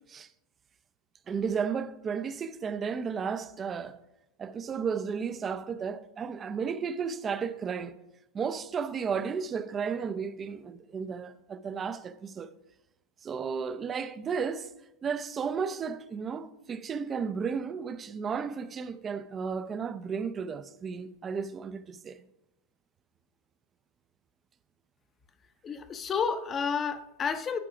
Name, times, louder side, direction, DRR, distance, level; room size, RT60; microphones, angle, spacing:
voice 1, 1.3-4.0 4.4-7.9 8.3-12.5 13.2-14.7 15.0-22.2, right 6 dB, 20° right, 0.5 m, -33 dB
voice 2, 25.6-27.6, left 6 dB, 25° left, 0.7 m, -30 dB
11.5 x 4.8 x 4.8 m
supercardioid pair, 145°, 0 cm